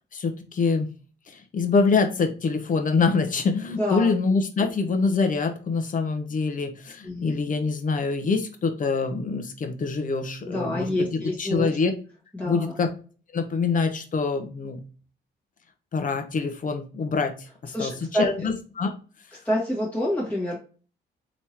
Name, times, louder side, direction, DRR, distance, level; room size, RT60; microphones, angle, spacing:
voice 1, 0.1-0.9 1.3-11.9 12.4-12.9 13.3-14.8 15.9-18.9, left 4 dB, 40° left, 6 dB, 0.8 m, -25 dB
voice 2, 3.7-4.1 4.6-4.7 7.0-7.4 10.4-11.7 12.3-12.7 17.7-18.3 19.4-20.6, left 1 dB, 5° left, -6 dB, 1.6 m, -27 dB
3.5 x 3.0 x 2.8 m, 0.38 s
cardioid pair, 90°, 20 cm